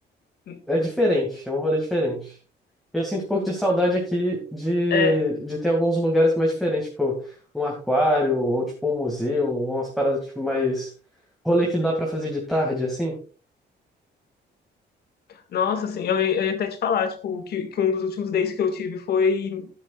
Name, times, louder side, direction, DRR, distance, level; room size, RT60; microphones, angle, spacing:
voice 1, 0.7-2.4 2.9-10.9 11.4-13.2, equal, ahead, 2.2 m, -24 dB
voice 2, 4.9-5.2 15.3-19.7, left 6 dB, 60° left, 1.9 m, -24 dB
13.5 x 10.5 x 2.4 m
cardioid pair, 165°, 19 cm